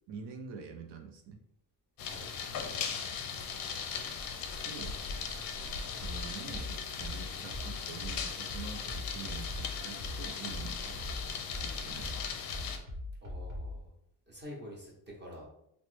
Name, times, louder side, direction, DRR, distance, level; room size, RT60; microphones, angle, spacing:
voice 1, 0.1-1.4 2.9-3.0 4.6-5.0 5.9-11.0 11.5-12.1, right 6 dB, 70° right, 4 dB, 0.5 m, -46 dB
sound 1, 2.0-12.8, left 6 dB, 55° left, 0.5 m, -38 dB
sound 2, 6.0-13.8, left 2 dB, 90° right, 1.0 m, -41 dB
voice 2, 13.2-13.9 14.3-15.4, equal, 25° right, -4 dB, 0.8 m, -47 dB
3.0 x 2.0 x 3.1 m, 0.77 s
cardioid pair, 145°, 44 cm